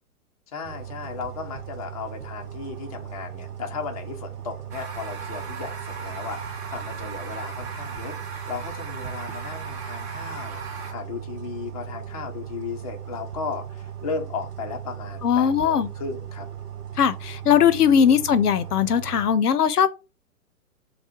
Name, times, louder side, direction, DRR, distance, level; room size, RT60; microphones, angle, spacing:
voice 1, 0.5-8.2 8.5-16.5 18.4-18.5, left 5 dB, 25° left, 0.4 m, -35 dB
sound 1, 0.6-19.3, right 9 dB, 90° right, 0.7 m, -38 dB
sound 2, 4.7-10.9, right 4 dB, 25° right, 0.7 m, -37 dB
voice 2, 15.2-15.9 17.0-19.9, left 8 dB, 80° left, 0.5 m, -19 dB
3.2 x 2.1 x 2.9 m
figure-of-eight pair, 115°, 45 cm